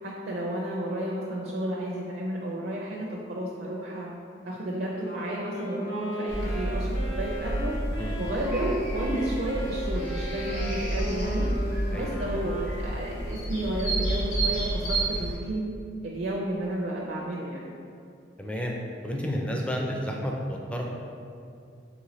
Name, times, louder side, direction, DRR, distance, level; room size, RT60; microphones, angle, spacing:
voice 1, 0.0-4.1 4.5-7.8 8.2-11.5 11.9-15.6 16.0-17.7, right 1 dB, 55° right, -4 dB, 0.4 m, -32 dB
Wind instrument woodwind instrument, 5.0-13.3, right 1 dB, 60° left, 0.8 m, -37 dB
sound 1, 6.3-15.3, right 1 dB, 80° left, 1.2 m, -30 dB
voice 2, 18.4-18.7 19.0-20.8, equal, 5° left, -1 dB, 0.4 m, -31 dB
3.9 x 3.1 x 3.1 m, 2.4 s
head